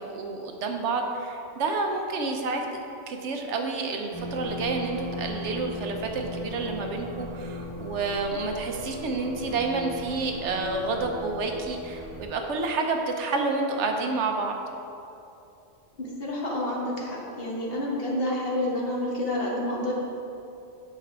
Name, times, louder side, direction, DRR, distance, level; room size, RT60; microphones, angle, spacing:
voice 1, 0.0-2.6 3.1-14.6, right 3 dB, 80° right, 3 dB, 1.1 m, -29 dB
sound 1, 4.1-12.2, left 1 dB, 15° left, 1.0 m, -37 dB
voice 2, 16.0-19.9, left 1 dB, 55° left, -3 dB, 1.5 m, -29 dB
8.5 x 6.5 x 3.4 m, 2.7 s
omnidirectional pair, 1.2 m